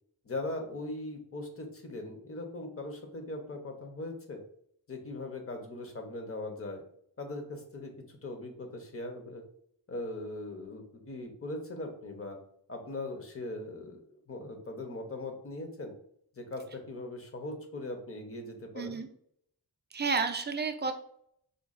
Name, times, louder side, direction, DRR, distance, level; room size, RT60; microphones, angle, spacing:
voice 1, 0.2-4.4 4.9-6.8 7.2-9.4 9.9-12.4 12.7-14.0 14.3-15.9 16.4-19.0, left 2 dB, 35° left, 3 dB, 0.7 m, -40 dB
voice 2, 18.8-19.1 19.9-20.9, right 4 dB, 25° right, 6 dB, 0.4 m, -31 dB
5.0 x 2.3 x 2.4 m, 0.68 s
wide cardioid pair, 95°, 40 cm